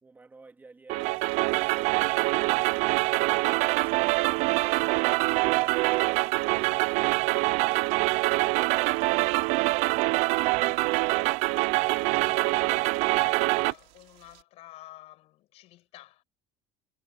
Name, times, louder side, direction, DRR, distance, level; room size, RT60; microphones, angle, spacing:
voice 1, 0.0-4.9, right 3 dB, 15° right, 2.9 m, -53 dB
sound 1, 0.9-13.7, right 24 dB, 70° right, 0.4 m, -25 dB
Rain, 1.0-14.4, right 26 dB, 85° right, 5.5 m, -59 dB
voice 2, 10.6-11.5 11.9-16.2, left 16 dB, 60° left, 5.4 m, -50 dB
cardioid pair, 150°, 12 cm